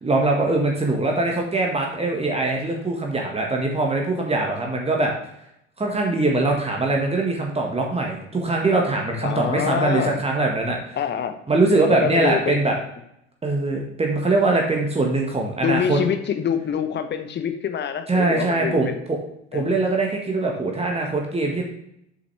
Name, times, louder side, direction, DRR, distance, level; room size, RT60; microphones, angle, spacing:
voice 1, 0.0-5.1 5.8-11.0 11.5-12.7 13.4-16.0 18.1-19.2 19.5-21.6, right 2 dB, 15° right, 0 dB, 1.6 m, -22 dB
voice 2, 9.2-10.2 10.9-11.4 11.9-12.7 15.6-19.0 19.5-19.8, left 8 dB, 30° left, 9 dB, 1.0 m, -26 dB
8.3 x 6.4 x 3.3 m, 0.76 s
figure-of-eight pair, 65°, 36 cm